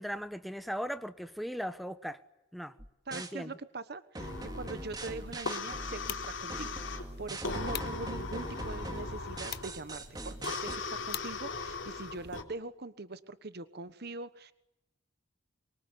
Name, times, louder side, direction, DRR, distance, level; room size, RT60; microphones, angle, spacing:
voice 1, 0.0-2.2 2.5-2.7 3.1-3.5, equal, ahead, 1.2 m, -38 dB
sound 1, 2.8-3.3 4.1-10.8, right 1 dB, 20° right, 2.5 m, -42 dB
voice 2, 3.1-14.5, right 3 dB, 55° right, 1.2 m, -43 dB
sound 2, 4.2-12.4, left 3 dB, 75° left, 3.7 m, -39 dB
sound 3, 5.7-12.1, left 12 dB, 55° left, 1.0 m, -47 dB
24.5 x 23.5 x 9.9 m
head